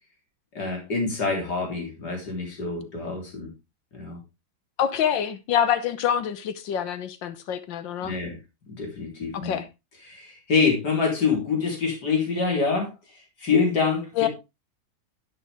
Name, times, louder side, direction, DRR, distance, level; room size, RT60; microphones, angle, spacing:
voice 1, 0.5-3.5 3.9-4.2 8.0-8.4 8.7-9.6 10.0-12.9 13.4-14.3, left 4 dB, 60° left, 4.3 m, -26 dB
voice 2, 4.8-8.2 9.4-9.7 14.2-14.3, left 9 dB, 85° left, 1.7 m, -26 dB
11.0 x 8.9 x 3.5 m
omnidirectional pair, 2.0 m